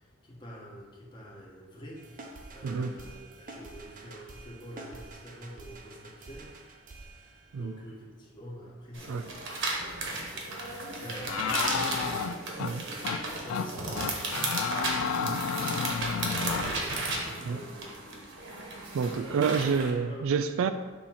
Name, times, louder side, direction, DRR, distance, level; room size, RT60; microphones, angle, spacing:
voice 1, 0.0-6.5 7.0-9.5 9.8-12.4 13.2-15.6 15.9-18.2 18.6-19.7 20.1-20.3, equal, 25° left, -3 dB, 1.2 m, -47 dB
sound 1, 2.0-7.8, right 2 dB, 40° right, 0.7 m, -48 dB
sound 2, 8.9-19.9, right 2 dB, 60° right, 1.2 m, -34 dB
sound 3, 11.3-12.7 13.0-13.2 13.5-13.7 14.0-16.7, left 7 dB, 85° left, 0.3 m, -31 dB
voice 2, 18.9-20.7, right 5 dB, 80° right, 11 dB, 0.3 m, -28 dB
6.8 x 2.9 x 5.6 m, 1.4 s
head